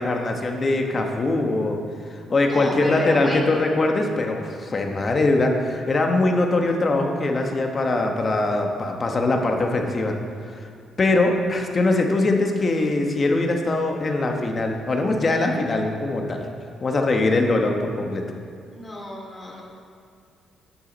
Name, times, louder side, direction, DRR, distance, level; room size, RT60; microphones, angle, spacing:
voice 1, 0.0-1.8 2.3-10.1 10.5-10.6 11.0-16.4 16.8-18.2, left 2 dB, 35° left, 3 dB, 1.3 m, -22 dB
voice 2, 2.4-3.5 18.7-19.6, left 1 dB, 15° left, -3 dB, 2.7 m, -30 dB
10.0 x 9.2 x 4.1 m, 2.2 s
cardioid pair, 90°, 0 cm